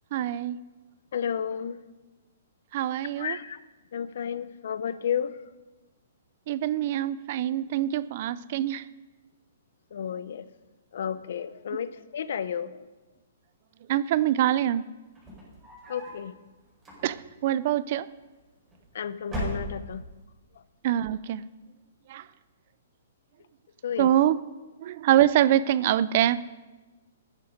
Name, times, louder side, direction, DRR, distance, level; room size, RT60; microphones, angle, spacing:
voice 1, 0.1-0.6 2.7-3.4 6.5-8.9 13.9-14.8 17.0-18.1 20.8-21.4 22.1-22.2 24.0-24.4 24.8-26.4, right 12 dB, 40° right, 18 dB, 0.4 m, -24 dB
voice 2, 1.1-1.8 3.2-3.6 3.9-5.3 9.9-10.5 10.9-12.8 15.9-16.3 18.9-20.0 23.8-24.1, left 8 dB, 65° left, 15 dB, 0.7 m, -32 dB
sound 1, 15.1-16.3 16.8-17.4 18.4-18.9 19.2-20.2, right 1 dB, 10° right, 4.5 m, -36 dB
14.0 x 9.8 x 5.2 m, 1.2 s
hypercardioid pair, 160°, 0 cm